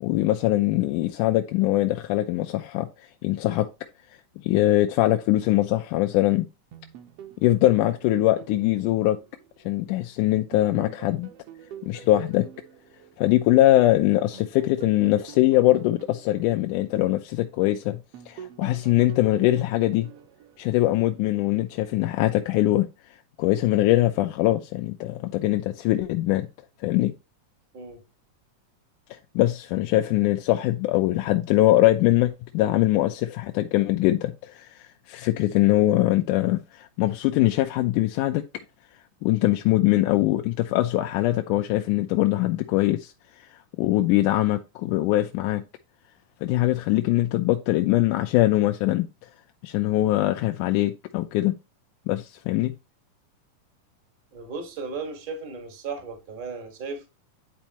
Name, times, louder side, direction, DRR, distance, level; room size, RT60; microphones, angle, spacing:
voice 1, 0.0-3.7 4.4-6.5 7.4-9.2 9.7-11.3 11.8-12.5 13.2-18.0 18.3-20.1 20.6-22.9 23.4-26.5 26.8-27.1 29.1-38.4 39.2-43.1 43.4-43.5 43.8-45.6 46.4-49.1 49.6-51.5 52.1-52.7, left 16 dB, 80° left, 2.1 m, -22 dB
sound 1, 6.7-10.1 10.5-13.8 14.3-17.7 18.1-21.4, right 10 dB, 65° right, 1.6 m, -46 dB
voice 2, 54.3-57.1, right 4 dB, 35° right, 0.8 m, -35 dB
10.5 x 4.3 x 2.9 m
omnidirectional pair, 3.6 m